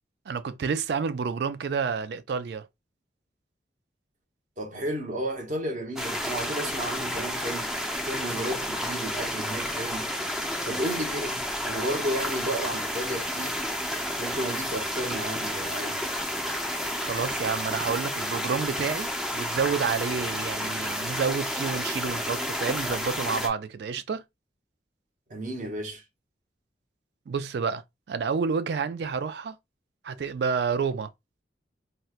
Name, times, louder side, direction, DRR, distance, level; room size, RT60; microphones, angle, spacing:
voice 1, 0.3-2.7 17.0-24.2 27.3-29.6 30.0-31.1, right 5 dB, 65° right, 0.3 m, -29 dB
voice 2, 4.6-10.1 10.7-13.6 14.2-16.1 25.3-26.0, right 1 dB, 45° right, 0.9 m, -33 dB
sound 1, 6.0-23.5, equal, 5° right, 0.4 m, -31 dB
4.2 x 2.1 x 2.4 m
head